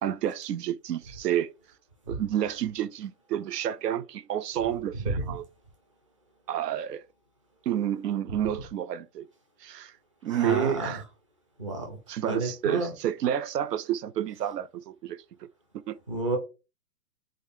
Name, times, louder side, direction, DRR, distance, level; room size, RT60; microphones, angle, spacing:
voice 1, 0.0-1.5 2.1-5.5 6.5-7.0 7.7-9.3 9.6-9.9 10.2-11.0 12.1-15.5 15.7-16.0, right 11 dB, 90° right, 0.6 m, -30 dB
voice 2, 10.3-11.0 11.6-12.0 12.3-12.9 16.1-16.4, right 1 dB, 20° right, 0.6 m, -30 dB
3.8 x 3.7 x 2.6 m
hypercardioid pair, 175°, 47 cm